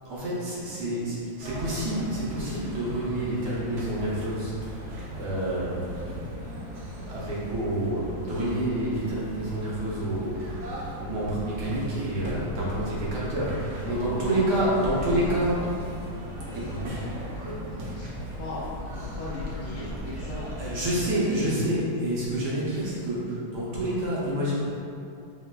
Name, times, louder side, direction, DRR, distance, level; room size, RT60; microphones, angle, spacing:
voice 1, 0.0-6.2 7.1-15.5 16.5-16.8 20.6-24.5, right 1 dB, 65° right, -7 dB, 1.2 m, -28 dB
voice 2, 0.6-0.9 13.8-14.6 14.9-15.6 16.4-20.7 21.1-21.3, left 1 dB, 60° left, -9 dB, 1.4 m, -39 dB
sound 1, 1.4-21.1, equal, 80° right, 0.6 m, -37 dB
4.8 x 3.0 x 2.2 m, 2.6 s
omnidirectional pair, 2.1 m